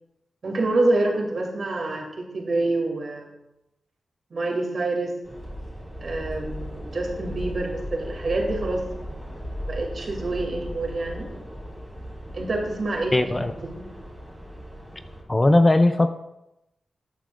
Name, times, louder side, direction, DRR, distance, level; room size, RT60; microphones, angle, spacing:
voice 1, 0.4-3.3 4.3-5.1 6.0-8.8 9.7-11.3 12.3-13.8, right 2 dB, 55° right, 1 dB, 2.6 m, -27 dB
sound 1, 5.2-15.2, equal, ahead, 3.4 m, -37 dB
voice 2, 13.1-13.5 15.3-16.1, left 2 dB, 20° left, 9 dB, 0.5 m, -18 dB
13.5 x 8.9 x 2.5 m, 0.90 s
cardioid pair, 80°, 0 cm